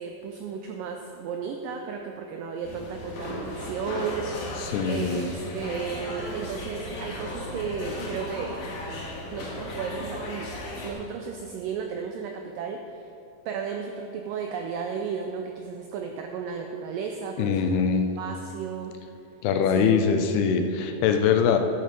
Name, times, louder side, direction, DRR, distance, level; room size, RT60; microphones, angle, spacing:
voice 1, 0.0-8.5 9.3-10.5 10.8-13.1 13.5-17.8 18.2-18.9 19.7-19.9, right 6 dB, 85° right, 3 dB, 1.9 m, -34 dB
sound 1, 2.6-10.9, left 1 dB, 55° left, 2.5 m, -35 dB
voice 2, 4.6-5.3 17.4-18.1 19.4-21.6, left 6 dB, 85° left, 6 dB, 2.8 m, -23 dB
12.0 x 7.8 x 5.2 m, 2.7 s
omnidirectional pair, 4.6 m